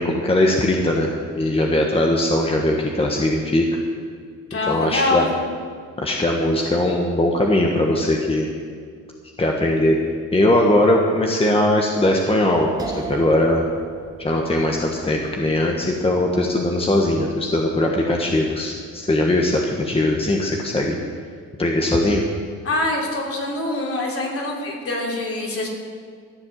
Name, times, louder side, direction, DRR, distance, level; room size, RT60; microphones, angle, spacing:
voice 1, 0.0-3.8 4.7-5.3 6.0-8.5 9.4-10.0 10.3-13.6 14.2-21.0 21.6-22.2, left 1 dB, 20° left, 0 dB, 1.4 m, -20 dB
voice 2, 4.5-5.3 22.6-25.7, left 2 dB, 50° left, -1 dB, 3.3 m, -24 dB
sound 1, 12.8-19.7, right 4 dB, 15° right, 1.8 m, -40 dB
14.0 x 7.8 x 7.5 m, 2.1 s
cardioid pair, 90°, 30 cm